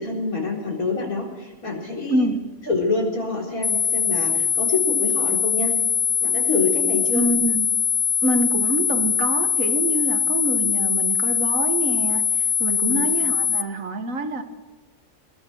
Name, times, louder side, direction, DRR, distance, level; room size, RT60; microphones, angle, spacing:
voice 1, 0.0-2.3 2.7-5.7 6.2-7.2 12.8-13.1, left 3 dB, 85° left, 4.6 m, -26 dB
voice 2, 2.1-2.4 7.1-7.7 8.2-14.4, right 2 dB, 70° right, 1.8 m, -26 dB
sound 1, 3.6-13.6, left 7 dB, 5° left, 0.4 m, -22 dB
21.0 x 14.5 x 4.5 m
omnidirectional pair, 1.5 m